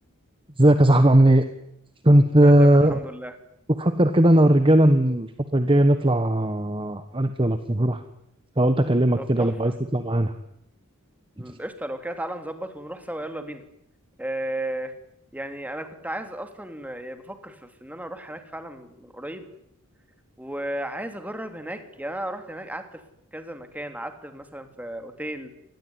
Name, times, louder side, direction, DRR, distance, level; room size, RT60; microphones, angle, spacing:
voice 1, 0.6-1.4 2.0-3.0 3.7-8.0 8.6-10.3, right 1 dB, 25° right, 9 dB, 1.4 m, -18 dB
voice 2, 2.4-3.3 9.2-9.5 11.4-13.6 14.2-14.9 15.3-19.5 20.4-23.0 23.3-25.5, right 1 dB, 5° right, 7 dB, 3.0 m, -34 dB
26.5 x 20.5 x 9.6 m, 0.73 s
head